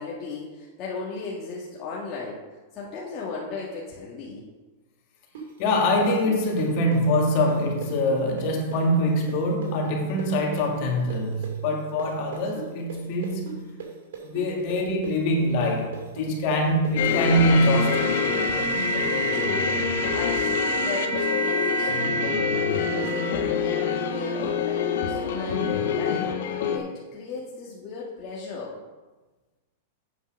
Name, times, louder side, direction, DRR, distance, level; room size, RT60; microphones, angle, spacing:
voice 1, 0.0-2.4 2.7-4.5 19.3-28.8, left 4 dB, 35° left, -5 dB, 1.5 m, -36 dB
sound 1, 5.3-13.0 13.2-17.8, right 6 dB, 75° right, 2.6 m, -38 dB
voice 2, 5.6-13.7 14.3-18.2, equal, 50° left, 1 dB, 2.1 m, -24 dB
sound 2, 17.0-26.8, left 4 dB, 70° left, 1.1 m, -25 dB
8.3 x 5.5 x 6.1 m, 1.2 s
supercardioid pair, 145°, 0 cm